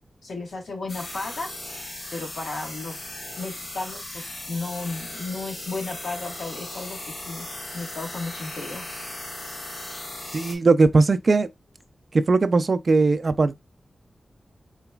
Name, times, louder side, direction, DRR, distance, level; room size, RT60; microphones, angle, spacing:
voice 1, 0.2-1.5 2.1-3.0 3.4-7.5 7.7-8.8, left 3 dB, 80° left, 1.5 m, -34 dB
sound 1, 0.9-10.6, left 1 dB, 55° left, 1.3 m, -37 dB
voice 2, 10.3-11.5 12.1-13.6, right 3 dB, 50° right, 0.4 m, -19 dB
4.0 x 3.9 x 2.3 m
wide cardioid pair, 105°, 0 cm